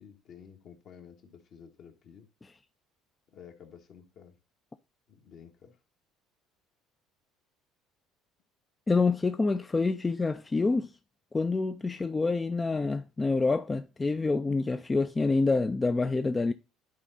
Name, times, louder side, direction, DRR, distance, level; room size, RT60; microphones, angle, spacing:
voice 1, 0.0-2.3 3.3-4.4 5.1-5.8, left 7 dB, 60° left, 1.6 m, -52 dB
voice 2, 8.9-10.9 11.3-16.5, left 3 dB, 20° left, 0.4 m, -27 dB
10.5 x 4.1 x 4.0 m
supercardioid pair, 80°, 0 cm